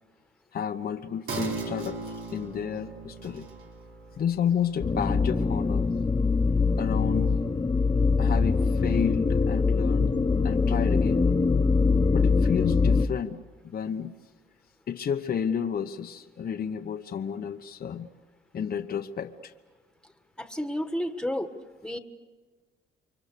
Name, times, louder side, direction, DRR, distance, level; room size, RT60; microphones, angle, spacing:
voice 1, 0.5-2.0 2.3-3.5 4.2-5.9 6.8-7.3 8.2-11.3 12.1-13.4 13.6-14.1 14.9-18.1 18.5-19.5, left 8 dB, 50° left, 7 dB, 1.0 m, -31 dB
sound 1, 1.3-8.3 8.7-8.8, right 3 dB, 80° right, 4.6 m, -40 dB
sound 2, 4.8-13.1, left 4 dB, 20° left, 0.8 m, -23 dB
voice 2, 20.4-21.6 21.8-22.0, equal, 5° left, 8 dB, 1.6 m, -31 dB
29.0 x 24.0 x 6.8 m, 1.4 s
cardioid pair, 90°, 20 cm